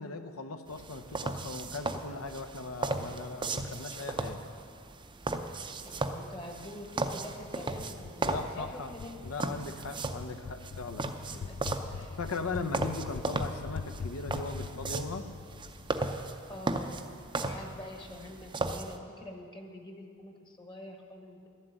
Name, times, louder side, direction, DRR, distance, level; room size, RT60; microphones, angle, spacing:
voice 1, 0.0-4.4 8.2-8.9 9.2-11.1 12.2-15.3, left 3 dB, 80° left, 7 dB, 0.8 m, -39 dB
sound 1, 0.7-19.0, right 2 dB, 20° right, 0.5 m, -36 dB
voice 2, 5.8-9.2 11.3-11.5 11.9-12.2 13.0-13.1 16.5-17.1 17.4-21.5, left 1 dB, 20° left, 3 dB, 1.1 m, -46 dB
sound 2, 7.8-16.5, left 6 dB, 55° left, 0.3 m, -43 dB
12.0 x 7.6 x 9.0 m, 2.3 s
head